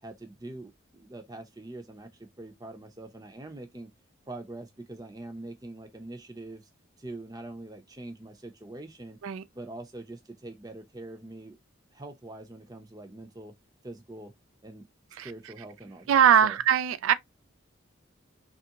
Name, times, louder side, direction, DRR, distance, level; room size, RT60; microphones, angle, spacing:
voice 1, 0.0-3.9 4.3-6.7 7.0-9.2 9.5-11.6 11.9-13.5 13.8-14.3 14.6-16.6, right 2 dB, 20° right, 0.6 m, -43 dB
voice 2, 16.1-17.1, right 8 dB, 85° right, 0.3 m, -21 dB
3.3 x 2.4 x 2.8 m
head